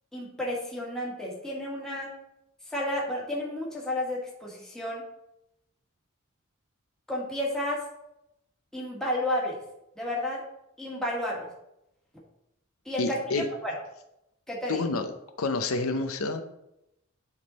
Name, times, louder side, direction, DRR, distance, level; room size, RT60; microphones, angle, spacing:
voice 1, 0.1-2.1 2.7-5.0 7.1-7.8 8.7-9.6 10.0-10.4 10.8-11.5 12.8-13.2 13.6-13.7 14.5-14.8, left 1 dB, 5° left, -4 dB, 1.5 m, -31 dB
voice 2, 13.0-13.5 14.7-15.1 15.4-16.4, left 3 dB, 75° left, 7 dB, 0.6 m, -28 dB
10.5 x 3.7 x 4.0 m, 0.85 s
head